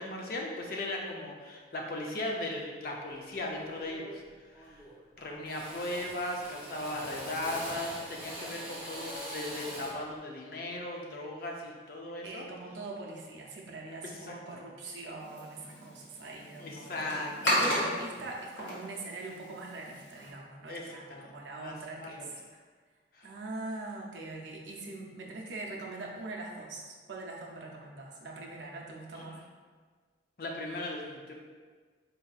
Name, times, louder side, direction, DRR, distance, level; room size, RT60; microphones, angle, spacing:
voice 1, 0.0-4.2 4.5-4.8 5.2-12.4 14.0-14.6 16.6-17.7 20.7-22.3 23.1-23.3 29.1-29.3 30.4-31.3, left 1 dB, 50° left, 0 dB, 0.5 m, -38 dB
Drill, 3.1-3.4 3.8-4.3 4.5-5.1 5.4-10.1, equal, 10° right, 0.6 m, -43 dB
voice 2, 12.2-17.0 17.5-22.3 23.2-29.4, right 2 dB, 75° right, -1 dB, 0.6 m, -42 dB
sound 1, 15.2-20.3, equal, 80° left, 1.0 m, -34 dB
4.2 x 2.7 x 2.3 m, 1.5 s
head